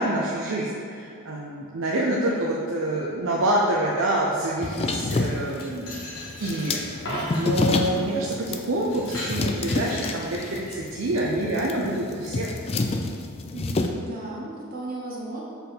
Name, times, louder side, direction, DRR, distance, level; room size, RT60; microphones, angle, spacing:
voice 1, 0.0-5.9 6.4-12.5, right 1 dB, 65° right, -3 dB, 0.6 m, -27 dB
sound 1, 4.6-13.9, left 3 dB, 25° left, 0.3 m, -29 dB
Glass, 5.3-7.6 8.2-8.4 8.8-10.8, left 2 dB, 80° left, 1.5 m, -40 dB
Coin (dropping), 6.9-7.8 13.9-14.1, equal, 50° left, 1.7 m, -33 dB
voice 2, 13.5-15.4, right 2 dB, 40° right, -5 dB, 1.0 m, -35 dB
5.3 x 4.6 x 5.9 m, 2.4 s
head